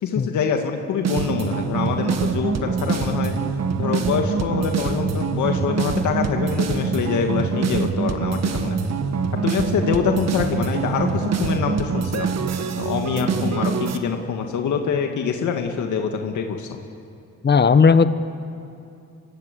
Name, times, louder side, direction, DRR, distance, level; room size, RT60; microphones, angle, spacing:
voice 1, 0.0-3.4 3.8-8.9 9.4-12.3 12.8-16.8, left 6 dB, 75° left, 4 dB, 2.0 m, -25 dB
sound 1, 1.0-14.0, right 5 dB, 60° right, 1.8 m, -24 dB
voice 2, 17.4-18.1, left 5 dB, 35° left, 12 dB, 1.2 m, -15 dB
27.0 x 24.0 x 8.4 m, 2.6 s
cardioid pair, 90°, 30 cm